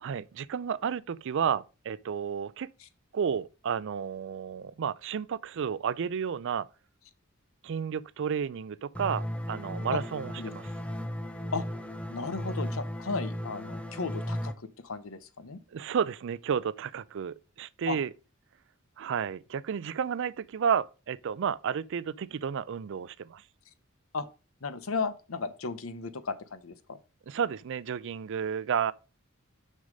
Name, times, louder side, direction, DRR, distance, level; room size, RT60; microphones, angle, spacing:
voice 1, 0.0-2.7 3.1-6.7 7.6-10.6 15.7-18.1 19.0-23.4 27.3-28.9, right 7 dB, 60° right, 0.4 m, -32 dB
sound 1, 9.0-14.5, equal, 5° left, 0.6 m, -36 dB
voice 2, 12.1-15.6 17.9-18.0 24.1-24.3 24.6-27.0, left 4 dB, 70° left, 0.8 m, -35 dB
6.4 x 5.6 x 5.0 m
head